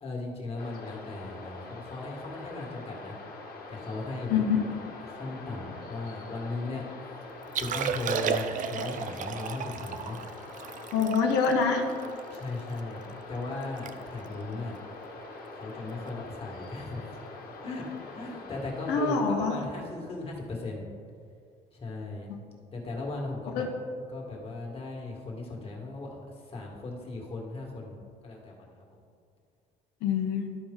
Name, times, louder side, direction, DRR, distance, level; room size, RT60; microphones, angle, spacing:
voice 1, 0.0-3.2 3.7-4.4 5.0-6.8 7.5-10.2 12.3-14.7 15.5-17.2 17.6-17.9 18.1-20.9 21.7-22.3 22.7-23.7 24.1-29.0, left 3 dB, 35° left, -1 dB, 1.8 m, -37 dB
sound 1, 0.6-19.1, left 3 dB, 60° left, 1.5 m, -44 dB
Liquid, 7.4-12.8 13.3-13.4 13.6-13.9 14.2-14.5 15.1-15.3 16.7-16.8, right 7 dB, 50° right, 0.5 m, -34 dB
voice 2, 10.9-11.9 18.9-19.6 23.5-23.7 30.0-30.6, left 5 dB, 85° left, 2 dB, 1.0 m, -25 dB
12.5 x 4.5 x 3.8 m, 2.2 s
cardioid pair, 110°, 17 cm